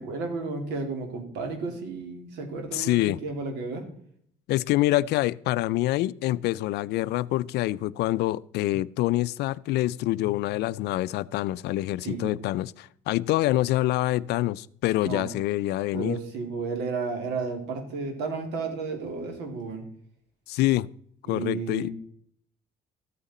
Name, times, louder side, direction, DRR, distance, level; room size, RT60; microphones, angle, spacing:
voice 1, 0.0-3.8 12.0-12.4 15.0-15.3 15.9-19.8 21.3-21.9, right 4 dB, 90° right, 2.7 m, -32 dB
voice 2, 2.7-3.2 4.5-16.2 20.5-20.9 21.3-21.9, left 16 dB, 80° left, 0.4 m, -26 dB
14.0 x 8.9 x 4.2 m
cardioid pair, 110°, 17 cm